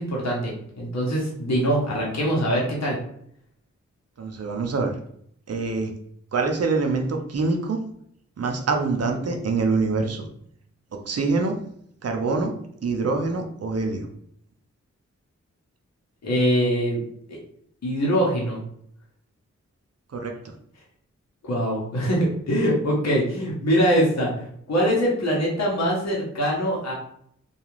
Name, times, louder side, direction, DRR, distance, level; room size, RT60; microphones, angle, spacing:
voice 1, 0.0-3.0 16.2-17.0 17.3-17.4 17.8-18.6 21.4-26.9, equal, 65° left, -3 dB, 1.0 m, -23 dB
voice 2, 4.2-4.9 5.5-5.9 6.3-7.8 8.4-10.3 10.9-11.6 12.0-12.6 12.8-14.1 20.1-20.3, right 3 dB, 55° right, 3 dB, 0.6 m, -25 dB
2.3 x 2.3 x 3.0 m, 0.67 s
cardioid pair, 45°, 29 cm